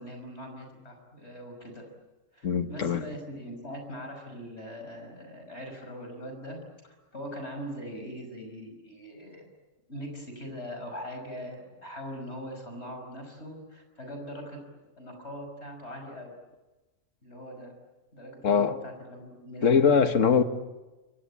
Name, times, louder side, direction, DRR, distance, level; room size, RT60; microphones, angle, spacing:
voice 1, 0.0-1.9 2.3-9.5 9.9-14.6 15.0-16.4 17.2-17.7 18.1-19.9, equal, 55° left, 6.0 m, -41 dB
voice 2, 2.4-3.0 18.4-18.7 19.6-20.4, left 6 dB, 70° left, 1.7 m, -22 dB
28.5 x 24.0 x 8.6 m
omnidirectional pair, 1.4 m